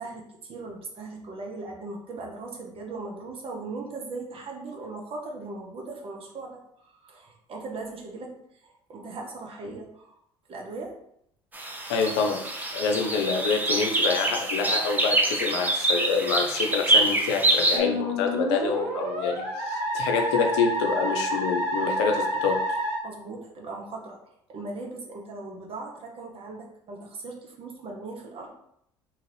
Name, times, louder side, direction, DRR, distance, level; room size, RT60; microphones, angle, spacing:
voice 1, 0.0-10.2 10.5-11.0 23.0-24.2 24.5-28.5, right 3 dB, 40° right, 1 dB, 0.8 m, -39 dB
sound 1, 11.5-17.8, right 1 dB, 10° right, 0.6 m, -25 dB
voice 2, 11.9-22.6, left 5 dB, 75° left, 3 dB, 0.5 m, -27 dB
Musical instrument, 17.7-23.0, equal, 60° right, 1.5 m, -29 dB
2.9 x 2.4 x 3.2 m, 0.73 s
hypercardioid pair, 65°, 14 cm